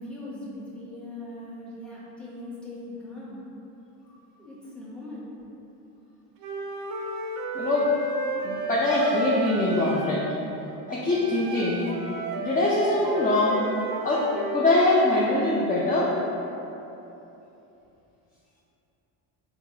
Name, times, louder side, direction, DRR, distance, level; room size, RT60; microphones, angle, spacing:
voice 1, 0.0-3.4 4.4-5.3, left 1 dB, ahead, -7 dB, 0.9 m, -40 dB
Wind instrument woodwind instrument, 6.4-10.2 11.1-14.7, right 3 dB, 50° right, 0.5 m, -33 dB
voice 2, 7.5-7.9 8.4-10.2 10.9-11.8 12.4-13.7 14.0-14.2 14.5-16.1, left 2 dB, 20° left, -6 dB, 0.4 m, -23 dB
3.8 x 2.3 x 2.7 m, 2.9 s
supercardioid pair, 70°, 46 cm